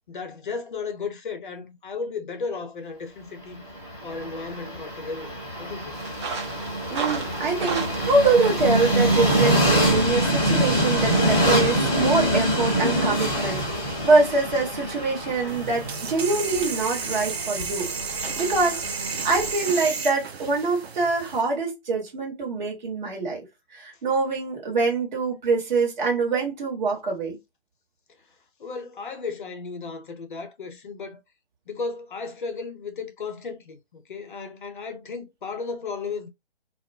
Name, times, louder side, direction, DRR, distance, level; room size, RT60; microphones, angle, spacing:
voice 1, 0.1-3.6 4.0-5.3 5.6-6.0 28.6-31.2 31.7-36.3, left 4 dB, 50° left, 0.6 m, -34 dB
Train, 3.7-19.7, right 1 dB, 10° left, 0.8 m, -25 dB
sound 1, 5.9-21.6, right 4 dB, 30° right, 0.6 m, -40 dB
voice 2, 6.9-23.4 23.7-27.4, right 3 dB, 45° right, 1.2 m, -24 dB
sound 2, 15.5-21.4, right 5 dB, 80° right, 0.5 m, -32 dB
2.3 x 2.0 x 2.6 m
figure-of-eight pair, 140°, 31 cm